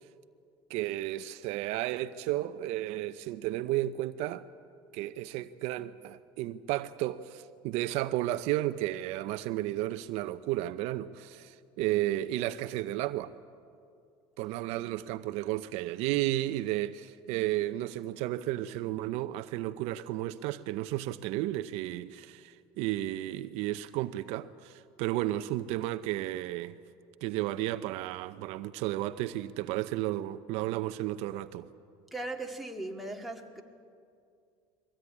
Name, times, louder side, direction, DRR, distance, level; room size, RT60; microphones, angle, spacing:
voice 1, 0.7-4.5 4.9-13.3 14.4-26.8 27.2-31.7, right 15 dB, 70° right, 0.7 m, -33 dB
voice 2, 32.1-33.6, right 2 dB, ahead, 2.0 m, -38 dB
22.5 x 16.0 x 9.7 m
supercardioid pair, 110°, 12 cm